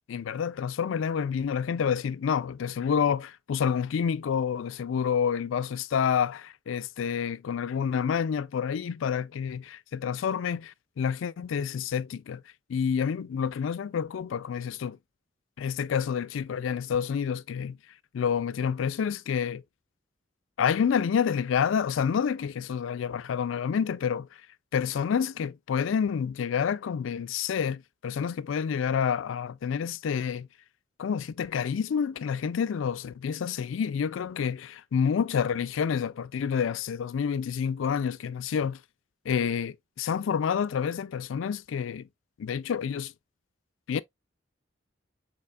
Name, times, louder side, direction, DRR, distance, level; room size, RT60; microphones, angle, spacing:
voice 1, 0.1-12.4 12.7-15.0 15.6-17.8 18.1-19.6 20.6-24.3 24.7-30.5 31.0-38.8 39.3-42.1 42.4-43.1 43.9-44.0, left 7 dB, 90° left, 0.4 m, -28 dB
6.8 x 2.9 x 2.3 m
head